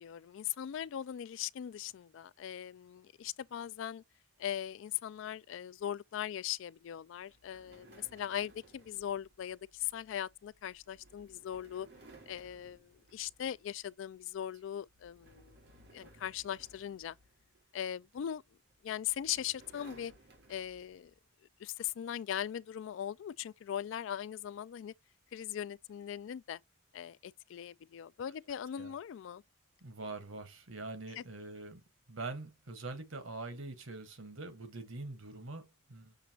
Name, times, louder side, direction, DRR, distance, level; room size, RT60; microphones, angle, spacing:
voice 1, 0.0-4.0 4.4-11.9 12.3-15.5 15.9-17.2 17.7-18.4 18.8-20.1 20.5-21.1 21.6-24.9 25.3-26.6 26.9-29.4 31.2-31.3, left 10 dB, 70° left, 0.3 m, -40 dB
sound 1, 7.3-13.8 14.2-14.5 14.9-17.9 18.7-21.1, right 2 dB, 55° right, 2.2 m, -60 dB
voice 2, 29.8-31.8 32.1-36.1, right 3 dB, 85° right, 1.3 m, -44 dB
6.5 x 2.8 x 2.8 m
head